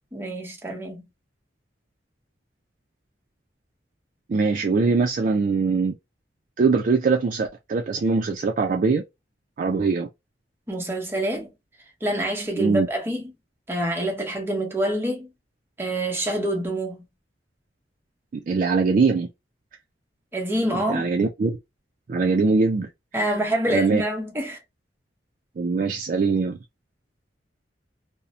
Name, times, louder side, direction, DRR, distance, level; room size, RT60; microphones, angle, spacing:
voice 1, 0.1-1.0 10.7-11.5 12.0-13.3 13.7-15.3 15.8-17.0 20.3-21.1 23.1-24.6, right 1 dB, 15° right, 0.8 m, -26 dB
voice 2, 4.3-5.9 6.6-9.0 9.6-10.1 12.6-12.9 18.5-19.3 20.9-21.6 22.1-22.9 23.7-24.0 25.6-26.6, right 4 dB, 45° right, 0.3 m, -22 dB
2.6 x 2.0 x 2.6 m
head